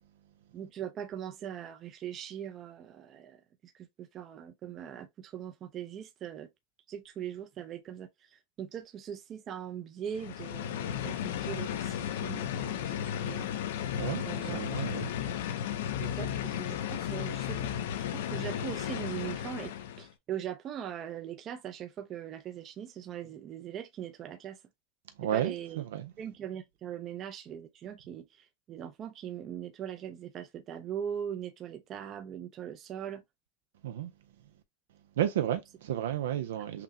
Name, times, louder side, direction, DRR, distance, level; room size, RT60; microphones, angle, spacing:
voice 1, 0.5-6.5 6.9-13.5 14.3-14.9 16.0-17.7 18.1-24.6 25.3-25.8 26.2-33.2, right 9 dB, 30° right, 0.5 m, -41 dB
sound 1, 10.1-20.1, left 10 dB, 75° left, 0.5 m, -34 dB
voice 2, 14.0-15.1 16.2-16.3 25.2-26.1 33.8-34.1 35.2-36.8, right 11 dB, 85° right, 0.5 m, -32 dB
5.8 x 2.1 x 2.6 m
supercardioid pair, 145°, 0 cm